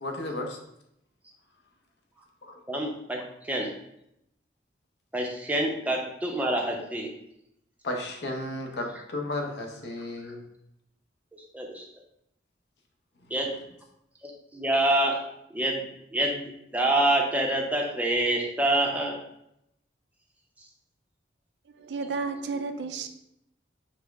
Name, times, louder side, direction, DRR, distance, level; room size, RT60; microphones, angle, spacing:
voice 1, 0.0-0.6 2.4-2.5 7.8-8.9 9.1-10.4, left 1 dB, 65° left, 0.7 m, -33 dB
voice 2, 2.7-3.7 5.1-7.1 11.5-11.9 13.3-13.5 14.2-15.2 15.5-15.8 16.1-19.2, right 1 dB, 10° right, 0.5 m, -26 dB
voice 3, 21.7-23.1, right 4 dB, 65° right, 0.3 m, -32 dB
5.5 x 2.0 x 3.4 m
head